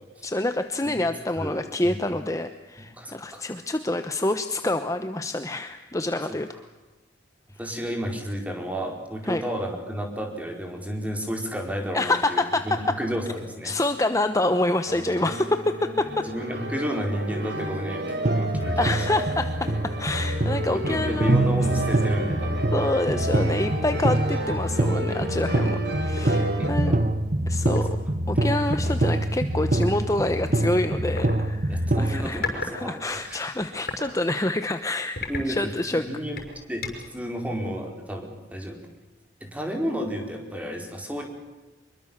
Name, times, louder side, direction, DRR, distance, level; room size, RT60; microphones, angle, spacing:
voice 1, 0.2-6.5 9.3-9.4 11.9-13.0 13.6-16.3 18.8-21.5 22.7-27.0 27.5-27.9 28.3-35.2 35.5-36.1, left 2 dB, 20° left, 8 dB, 1.0 m, -27 dB
voice 2, 2.9-3.5 7.6-13.7 16.2-18.0 18.3-18.9 20.7-22.6 26.6-27.0 27.6-27.7 28.8-29.2 31.7-33.4 35.3-36.4 36.7-36.8 37.1-38.8 39.4-41.3, equal, 10° right, 2 dB, 4.8 m, -32 dB
sound 1, 14.9-26.7, right 1 dB, 75° right, 4.0 m, -32 dB
sound 2, 18.2-32.2, right 1 dB, 45° right, 1.2 m, -25 dB
sound 3, 22.7-22.9 23.4-23.5 23.9-24.2 25.2-25.3 25.5-27.0 27.7-27.9 28.7-28.8 29.8-30.0 31.2-31.4 32.1-32.8 33.1-34.1 34.5-34.7 35.2-36.0 36.4-37.2, left 3 dB, 55° left, 6.0 m, -35 dB
25.5 x 23.0 x 7.3 m, 1.2 s
head